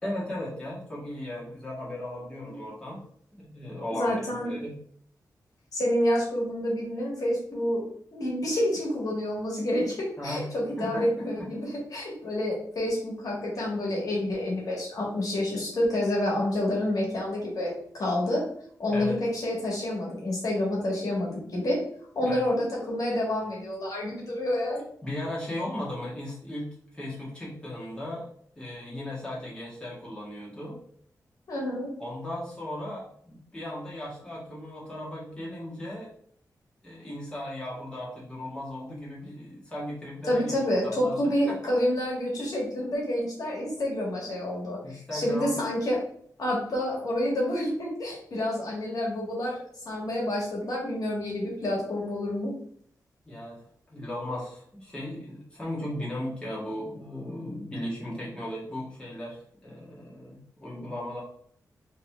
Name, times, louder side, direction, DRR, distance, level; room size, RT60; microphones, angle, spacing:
voice 1, 0.0-3.0 3.3-4.7 10.2-10.5 10.8-11.1 11.4-11.5 18.9-19.2 22.2-22.5 25.0-26.7 26.9-28.3 28.5-30.8 32.0-36.1 36.8-40.6 40.8-41.7 44.8-45.6 53.2-53.6 53.9-61.2, left 1 dB, 15° left, -6 dB, 1.7 m, -36 dB
voice 2, 3.9-4.6 5.7-18.5 18.8-21.8 22.1-24.8 31.5-31.9 40.3-46.0 46.4-52.5, left 1 dB, 65° left, -3 dB, 1.6 m, -28 dB
3.8 x 3.2 x 3.5 m, 0.62 s
wide cardioid pair, 120°, 7 cm